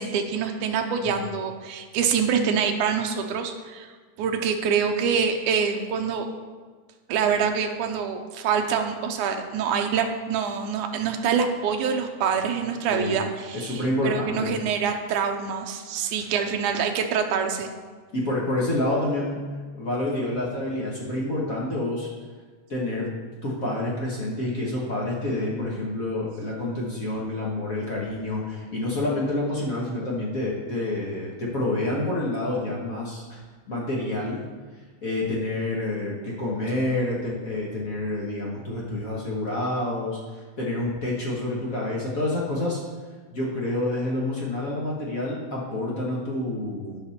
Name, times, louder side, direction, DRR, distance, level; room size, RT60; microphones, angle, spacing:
voice 1, 0.0-3.9 4.2-6.3 7.1-17.7, right 6 dB, 85° right, 4 dB, 2.2 m, -25 dB
voice 2, 13.5-14.5 15.9-16.3 18.1-19.4 19.7-22.1 22.7-23.1 23.4-33.4 33.7-34.4 34.7-42.8 43.3-47.0, left 1 dB, 60° left, -5 dB, 0.8 m, -28 dB
12.0 x 5.7 x 4.2 m, 1.5 s
omnidirectional pair, 3.5 m